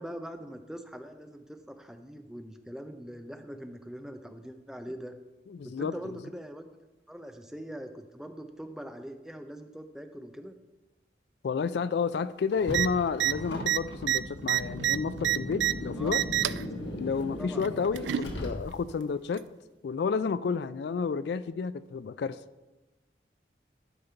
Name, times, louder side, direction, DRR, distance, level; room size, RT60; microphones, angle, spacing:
voice 1, 0.0-5.1 5.6-6.8 7.1-10.6 16.0-16.1 17.4-18.1, equal, 5° right, 6 dB, 0.5 m, -42 dB
voice 2, 5.5-6.2 11.4-16.2 17.0-19.4 19.8-22.4, left 5 dB, 70° left, 16 dB, 0.3 m, -31 dB
Car, 12.5-19.0, left 1 dB, 90° left, 1.4 m, -38 dB
sound 1, 12.7-12.9 13.1-13.3 13.6-15.7 16.1-16.6 17.6-18.3 19.3-19.4, right 13 dB, 85° right, 0.3 m, -27 dB
12.5 x 5.3 x 4.4 m, 1.1 s
head